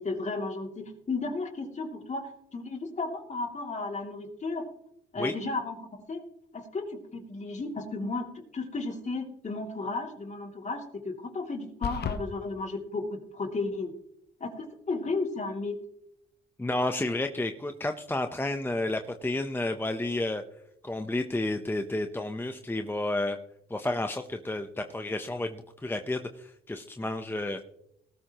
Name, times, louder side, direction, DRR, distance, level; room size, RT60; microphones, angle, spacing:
voice 1, 0.0-4.7 5.1-6.2 6.5-8.3 8.5-13.9 14.4-15.8, left 3 dB, 35° left, 3 dB, 2.8 m, -34 dB
sound 1, 11.8-12.2, left 7 dB, 55° left, 1.1 m, -31 dB
voice 2, 16.6-20.4 20.8-23.4 23.7-27.6, left 2 dB, 10° left, 6 dB, 0.9 m, -31 dB
18.5 x 13.5 x 3.0 m, 0.79 s
cardioid pair, 90°, 20 cm